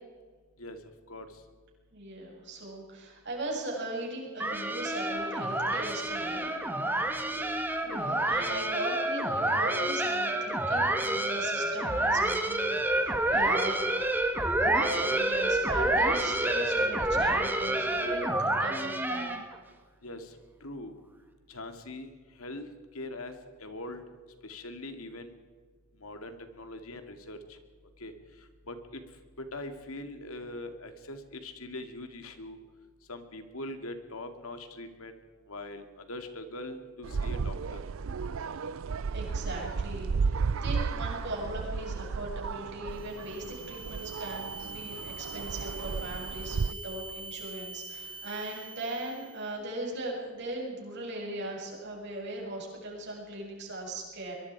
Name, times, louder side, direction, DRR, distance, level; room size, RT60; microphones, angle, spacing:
voice 1, 1.1-1.4 7.3-7.5 20.0-20.9 21.5-22.1 22.4-24.0 24.4-25.4 26.0-27.6 28.0-28.1 28.4-29.0 29.4-32.6 33.1-35.1 35.5-37.8, left 1 dB, 85° left, 7 dB, 2.5 m, -42 dB
voice 2, 1.9-6.6 7.8-14.1 14.6-19.2 38.5-38.7 39.1-40.3 40.6-54.3, right 1 dB, 55° right, -1 dB, 7.4 m, -38 dB
sound 1, 4.4-19.5, right 1 dB, 10° right, 2.0 m, -28 dB
sound 2, 37.0-46.7, right 5 dB, 70° right, 0.5 m, -34 dB
sound 3, 42.9-49.5, right 4 dB, 25° right, 3.5 m, -44 dB
23.5 x 23.0 x 4.8 m, 1.5 s
head